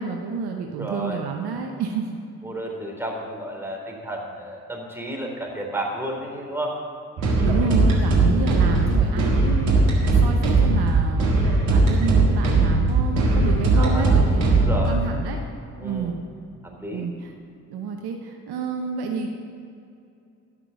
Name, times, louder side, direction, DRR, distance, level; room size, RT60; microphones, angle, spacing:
voice 1, 0.0-2.1 7.3-15.4 15.8-16.2 16.9-17.3 17.7-19.3, right 5 dB, 65° right, 3 dB, 1.1 m, -29 dB
voice 2, 0.7-1.2 2.4-6.8 12.0-12.1 13.8-14.2 14.6-15.0 15.8-16.1 16.8-17.1, right 1 dB, 5° right, -1 dB, 3.4 m, -31 dB
sound 1, 7.2-14.9, right 3 dB, 80° right, 1.9 m, -19 dB
15.5 x 6.1 x 6.9 m, 2.6 s
hypercardioid pair, 40°, 42 cm